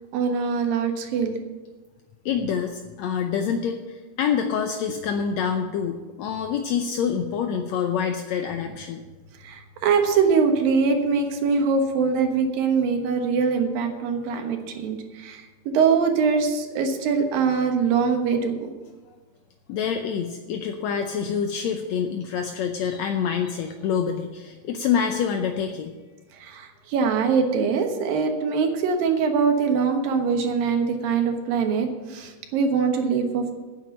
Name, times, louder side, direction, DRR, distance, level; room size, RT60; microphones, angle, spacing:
voice 1, 0.1-1.4 9.4-18.7 26.3-33.5, right 5 dB, 90° right, 4 dB, 3.1 m, -23 dB
voice 2, 2.2-9.0 19.7-26.0, left 7 dB, 80° left, 5 dB, 1.6 m, -26 dB
9.7 x 7.7 x 9.1 m, 1.3 s
omnidirectional pair, 3.9 m